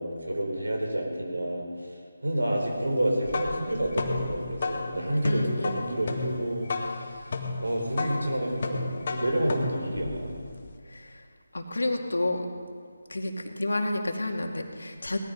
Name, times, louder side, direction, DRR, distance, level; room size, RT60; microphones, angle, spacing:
voice 1, 0.0-7.2 7.6-10.3, right 1 dB, 85° right, 1 dB, 4.7 m, -29 dB
sound 1, 3.0-10.7, left 3 dB, 45° left, 1.7 m, -33 dB
voice 2, 5.2-5.8 10.9-11.1 11.5-12.5 13.1-15.2, left 2 dB, 80° left, 3 dB, 2.2 m, -30 dB
18.0 x 13.5 x 5.4 m, 2.1 s
figure-of-eight pair, 160°, 0 cm